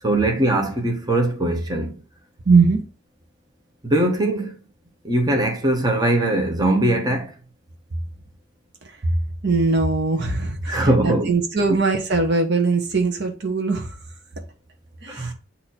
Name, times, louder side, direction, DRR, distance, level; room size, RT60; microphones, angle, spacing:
voice 1, 0.0-1.9 3.8-4.6 5.0-7.3 10.7-11.3 11.7-11.8 15.1-15.3, right 1 dB, 20° right, 1.1 m, -21 dB
voice 2, 2.4-2.8 9.4-14.0 15.0-15.3, right 4 dB, 55° right, 1.0 m, -20 dB
8.0 x 2.8 x 4.3 m
head